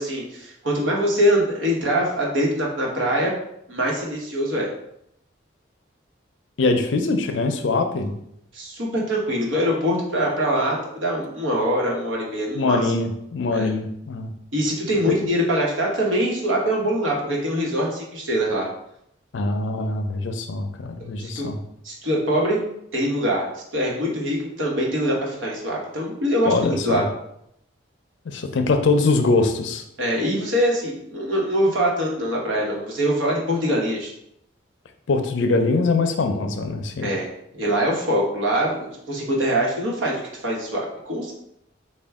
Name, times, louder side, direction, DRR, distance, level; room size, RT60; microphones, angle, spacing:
voice 1, 0.0-3.3 3.7-4.7 8.5-12.8 13.5-13.7 14.5-18.7 21.2-21.5 21.8-22.6 22.9-27.0 30.0-34.1 37.0-41.3, equal, 90° right, -2 dB, 1.1 m, -23 dB
voice 2, 6.6-8.1 12.5-14.3 15.1-15.2 19.3-21.6 26.5-27.1 28.3-29.8 35.1-37.1, left 3 dB, 75° left, 6 dB, 0.5 m, -22 dB
4.3 x 2.3 x 3.5 m, 0.77 s
head